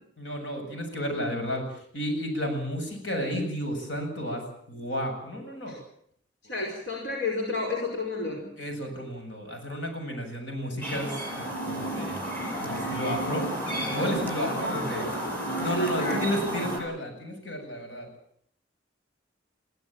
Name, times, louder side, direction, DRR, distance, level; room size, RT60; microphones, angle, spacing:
voice 1, 0.2-1.6 1.9-4.4 4.7-5.7 6.4-6.5 8.6-12.2 12.6-13.5 13.8-15.1 15.5-18.1, equal, 85° left, 4 dB, 7.7 m, -32 dB
voice 2, 6.4-8.5 14.4-16.2, left 2 dB, 65° left, 0 dB, 5.2 m, -32 dB
Chirp tweet, 10.8-16.8, right 1 dB, 10° left, 7.4 m, -32 dB
22.5 x 16.0 x 9.0 m, 0.68 s
head